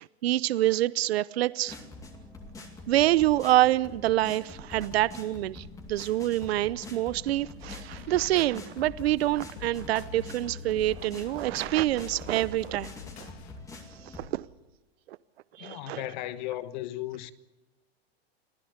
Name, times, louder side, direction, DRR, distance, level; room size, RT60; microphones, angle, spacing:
voice 1, 0.0-1.8 2.9-12.9 14.2-14.5 15.6-16.0, right 15 dB, 75° right, 0.8 m, -26 dB
sound 1, 1.7-14.3, left 2 dB, 10° left, 2.3 m, -45 dB
sound 2, 7.6-13.6, left 9 dB, 85° left, 2.0 m, -47 dB
voice 2, 15.6-17.3, left 14 dB, 45° left, 1.3 m, -36 dB
25.5 x 16.0 x 8.1 m
supercardioid pair, 160°, 31 cm